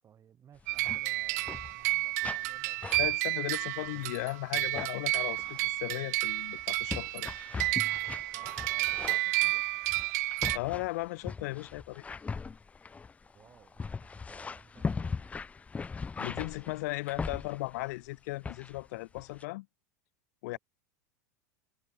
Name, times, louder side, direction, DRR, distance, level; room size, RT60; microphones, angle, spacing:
voice 1, 0.0-3.6 8.1-9.6 13.2-15.3 20.5-20.6, right 9 dB, 30° right, 7.2 m, -59 dB
sound 1, 0.6-1.0 1.3-1.9 2.2-2.6 2.8-4.2 4.5-4.9 5.4-5.7 6.3-17.9 18.4-18.9 19.2-19.4, left 5 dB, 15° left, 0.5 m, -40 dB
sound 2, 0.7-10.6, right 21 dB, 70° right, 0.5 m, -31 dB
voice 2, 3.0-7.3 10.5-12.0 16.2-19.7 20.4-20.6, left 22 dB, 70° left, 0.4 m, -36 dB
hypercardioid pair, 110°, 9 cm